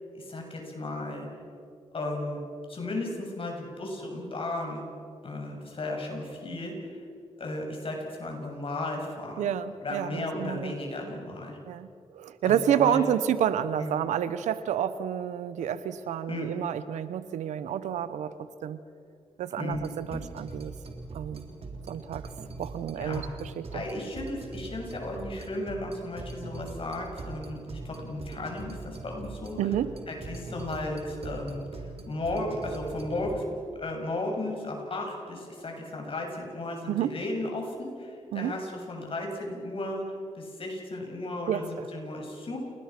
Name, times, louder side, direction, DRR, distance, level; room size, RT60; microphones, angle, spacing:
voice 1, 0.1-1.3 1.9-2.4 2.7-4.8 5.2-6.9 7.4-9.5 9.8-11.6 12.4-13.0 13.8-13.9 16.3-16.6 19.6-19.8 20.1-20.2 23.0-23.3 23.7-29.7 30.1-33.4 33.8-42.6, left 2 dB, 50° left, 1 dB, 7.5 m, -35 dB
voice 2, 9.4-10.7 11.7-11.9 12.1-18.8 19.4-20.7 21.1-21.5 21.9-22.2 22.6-23.8 29.6-29.9 36.9-37.1 38.3-38.6 41.5-41.6, right 10 dB, 90° right, 14 dB, 1.0 m, -29 dB
sound 1, 19.7-33.4, right 3 dB, 55° right, 3.7 m, -42 dB
29.0 x 20.0 x 6.1 m, 2.4 s
cardioid pair, 60°, 12 cm